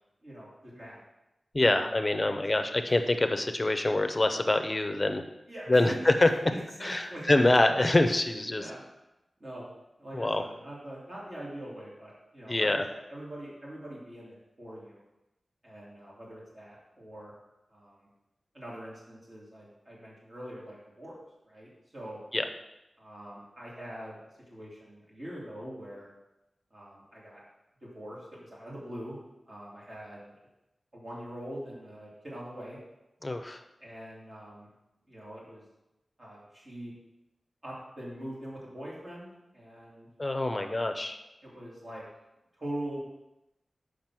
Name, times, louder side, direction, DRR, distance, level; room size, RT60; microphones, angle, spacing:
voice 1, 0.2-1.0 1.6-2.9 5.5-7.3 8.6-8.8 9.4-9.7 10.0-15.0 15.6-17.3 17.7-18.1 18.5-21.2 21.4-22.2 23.0-24.2 24.5-26.1 26.7-27.4 27.8-29.2 29.5-30.3 30.9-32.8 33.8-34.7 35.1-35.6 36.2-36.9 37.6-40.1 40.4-40.9 41.4-42.1 42.6-43.0, right 1 dB, 40° right, -6 dB, 2.7 m, -43 dB
voice 2, 1.5-5.2 5.7-6.3 6.8-8.7 10.1-10.4 12.5-12.8 22.3-22.4 33.2-33.6 40.2-41.2, left 2 dB, 25° left, 7 dB, 0.7 m, -25 dB
7.3 x 5.1 x 6.1 m, 0.93 s
wide cardioid pair, 115°, 0 cm